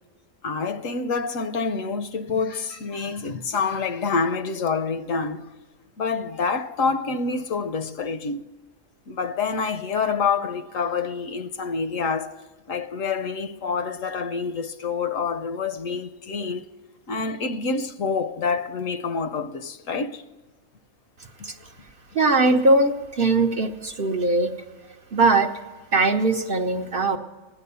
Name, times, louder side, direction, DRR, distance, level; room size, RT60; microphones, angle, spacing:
voice 1, 0.4-5.5 6.0-8.4 9.1-12.4 12.7-16.7 17.1-20.2 21.4-21.5, left 5 dB, 70° left, 1.1 m, -27 dB
voice 2, 22.1-24.5 25.1-25.5 25.9-27.2, right 3 dB, 50° right, 0.8 m, -20 dB
16.0 x 11.0 x 6.8 m
omnidirectional pair, 1.5 m